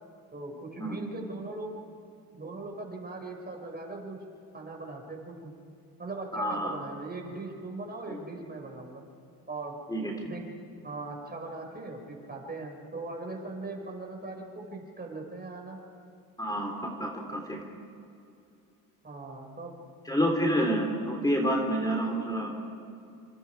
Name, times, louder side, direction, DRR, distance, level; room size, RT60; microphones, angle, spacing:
voice 1, 0.3-1.8 2.3-4.2 4.5-5.6 6.0-9.0 9.5-9.8 10.2-10.5 10.8-15.8 19.0-19.9, right 2 dB, 25° right, 1 dB, 5.6 m, -40 dB
voice 2, 6.3-6.8 8.1-8.2 9.9-10.1 16.4-16.7 17.0-17.6 20.1-22.5, equal, 10° left, 1 dB, 3.4 m, -28 dB
27.5 x 25.0 x 4.8 m, 2.6 s
cardioid pair, 85°, 39 cm